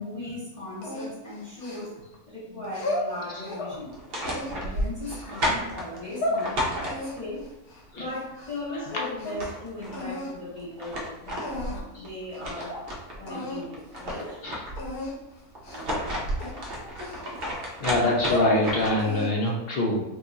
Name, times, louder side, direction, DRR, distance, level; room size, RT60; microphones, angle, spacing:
voice 1, 0.0-4.0 4.5-7.5 8.0-11.6 12.0-12.8 13.2-14.4, left 1 dB, 25° left, -11 dB, 0.9 m, -38 dB
sound 1, 0.8-2.2 2.6-3.8 4.2-5.3 5.9-6.4 6.8-8.6 8.9-9.5 9.9-10.4 11.0-11.1 11.4-12.0 12.3-12.4 12.7-12.8 13.3-13.6 14.0-14.2 14.8-15.1 15.6-16.0 16.4-17.6 18.1-18.6 19.0-19.5, left 1 dB, 80° left, 1.2 m, -33 dB
sound 2, 3.9-7.4 8.9-9.0 9.2-10.1 10.6-13.2 13.6-15.0 15.6-19.2, equal, 50° right, 0.8 m, -32 dB
voice 2, 17.8-20.0, left 1 dB, 60° left, -1 dB, 0.6 m, -24 dB
2.9 x 2.3 x 3.8 m, 0.98 s
omnidirectional pair, 1.6 m